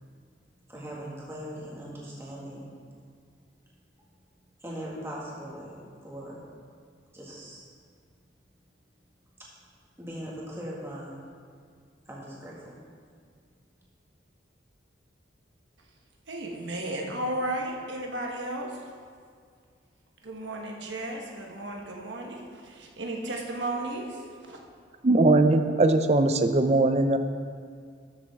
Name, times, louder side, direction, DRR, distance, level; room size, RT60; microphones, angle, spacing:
voice 1, 0.7-2.7 4.3-5.8 6.0-6.4 7.1-7.8 9.4-9.5 10.0-11.2 12.1-12.8, equal, 15° right, -5 dB, 1.9 m, -40 dB
voice 2, 16.3-18.8 20.2-24.6, right 1 dB, 70° right, 0 dB, 1.3 m, -34 dB
voice 3, 25.0-27.2, right 2 dB, 35° right, 8 dB, 0.5 m, -20 dB
13.0 x 7.1 x 3.6 m, 2.1 s
head